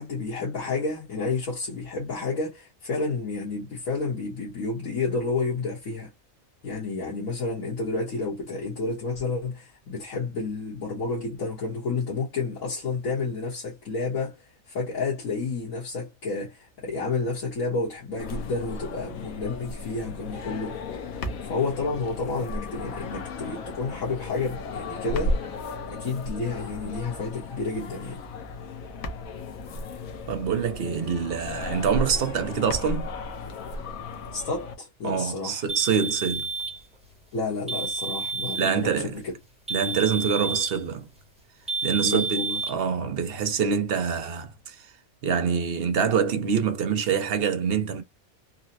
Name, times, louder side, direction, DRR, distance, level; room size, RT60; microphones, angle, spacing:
voice 1, 0.0-6.1 6.6-20.8 21.4-25.4 25.9-28.2 34.3-35.6 37.3-39.3 42.0-42.6, left 3 dB, 70° left, 1.6 m, -30 dB
sound 1, 18.2-34.7, left 2 dB, 85° left, 1.2 m, -35 dB
voice 2, 30.3-33.1 35.0-36.5 38.6-39.2 39.7-41.1 41.8-44.9 45.2-48.0, right 7 dB, 55° right, 0.7 m, -25 dB
sound 2, 35.7-36.8 37.7-38.8 39.7-40.8 41.7-42.7, right 3 dB, 5° right, 0.8 m, -30 dB
3.9 x 2.1 x 2.7 m
omnidirectional pair, 1.4 m